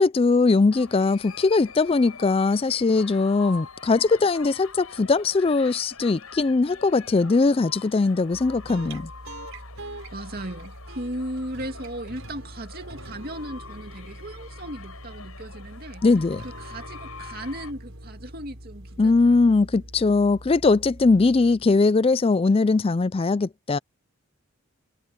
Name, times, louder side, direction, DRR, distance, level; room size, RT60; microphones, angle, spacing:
voice 1, 0.0-9.1 16.0-16.4 19.0-23.8, left 3 dB, 25° left, 0.3 m, -20 dB
sound 1, 0.7-17.7, left 5 dB, 85° left, 7.5 m, -45 dB
sound 2, 8.3-21.9, right 1 dB, 70° right, 4.5 m, -43 dB
voice 2, 9.8-16.0 16.4-19.6, right 1 dB, 45° right, 2.6 m, -37 dB
head